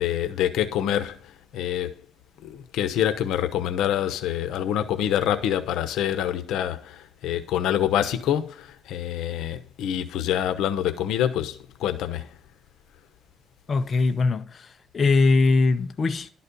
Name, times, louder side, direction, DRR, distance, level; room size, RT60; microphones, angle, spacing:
voice 1, 0.0-2.0 2.4-12.4, left 10 dB, 85° left, 1.0 m, -26 dB
voice 2, 13.7-16.3, left 3 dB, 40° left, 0.7 m, -21 dB
12.0 x 4.3 x 6.8 m
cardioid pair, 105°, 0 cm